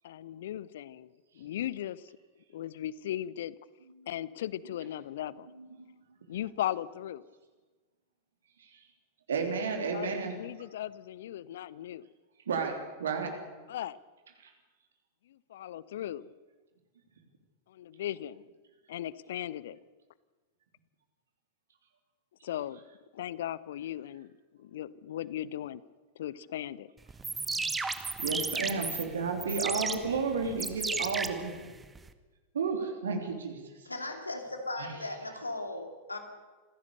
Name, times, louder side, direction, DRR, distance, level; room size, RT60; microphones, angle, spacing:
voice 1, 0.0-1.1 1.4-2.0 2.5-3.5 4.1-5.4 6.3-7.2 9.9-12.0 13.7-14.0 15.5-16.2 18.0-18.4 18.9-19.8 22.4-22.8 23.2-24.3 24.7-25.8 26.2-26.9, left 12 dB, 60° left, 20 dB, 0.7 m, -37 dB
voice 2, 5.3-5.9 9.3-10.4 12.5-13.3 14.4-14.5 28.2-31.7 32.5-33.6 34.8-34.9, right 5 dB, 65° right, 4 dB, 3.2 m, -32 dB
sound 1, 27.1-32.1, right 4 dB, 10° right, 1.2 m, -35 dB
voice 3, 33.8-36.2, left 2 dB, 80° left, 5 dB, 3.0 m, -37 dB
26.5 x 16.0 x 6.7 m, 1.3 s
figure-of-eight pair, 90°, 0 cm